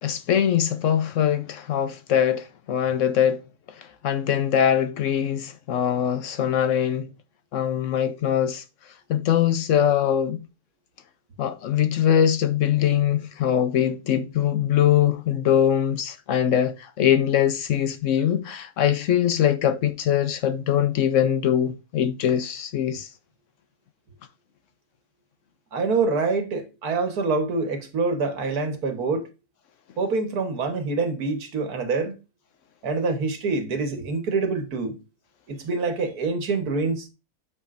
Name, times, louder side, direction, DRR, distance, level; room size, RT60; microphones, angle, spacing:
voice 1, 0.0-3.4 3.8-7.1 7.5-8.6 9.1-10.4 11.4-23.1, left 9 dB, 65° left, 0.9 m, -22 dB
voice 2, 25.7-29.2 30.0-32.1 32.8-35.0 35.5-37.1, right 4 dB, 80° right, 1.8 m, -25 dB
12.0 x 4.9 x 2.5 m
omnidirectional pair, 1.6 m